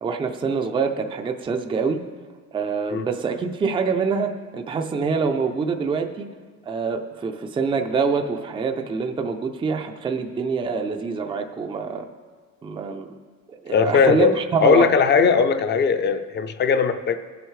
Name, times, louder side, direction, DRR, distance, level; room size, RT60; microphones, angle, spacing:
voice 1, 0.0-2.0 2.5-6.3 6.7-12.1 12.6-13.1 13.5-14.9, right 5 dB, 15° right, 5 dB, 0.4 m, -25 dB
voice 2, 13.7-14.3 14.6-17.2, left 5 dB, 30° left, 9 dB, 0.5 m, -18 dB
19.0 x 8.0 x 3.2 m, 1.5 s
cardioid pair, 165°, 33 cm